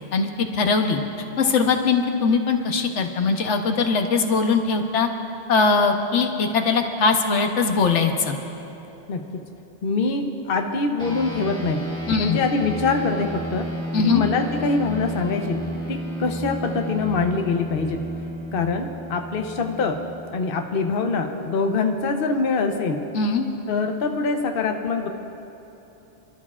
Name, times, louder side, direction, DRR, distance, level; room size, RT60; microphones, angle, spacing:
voice 1, 0.1-1.0 1.4-5.1 5.5-8.4 12.1-12.4 13.9-14.2 23.1-23.5, left 4 dB, 80° left, 5 dB, 1.2 m, -21 dB
voice 2, 9.8-11.8 12.2-13.7 14.0-15.6 15.9-18.0 18.5-20.0 20.3-23.0 23.7-25.1, left 4 dB, 55° left, 4 dB, 0.9 m, -24 dB
sound 1, 11.0-20.7, right 1 dB, 5° left, 1.5 m, -32 dB
27.5 x 12.0 x 2.4 m, 3.0 s
omnidirectional pair, 1.2 m